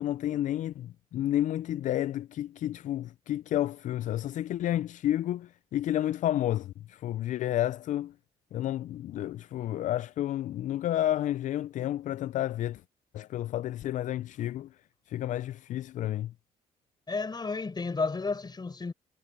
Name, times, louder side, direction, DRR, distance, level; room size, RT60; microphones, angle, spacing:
voice 1, 0.0-8.1 8.5-12.8 13.1-14.8 15.1-16.3, left 12 dB, 60° left, 0.4 m, -31 dB
voice 2, 17.1-18.9, left 4 dB, 30° left, 4.7 m, -32 dB
supercardioid pair, 70°, 14 cm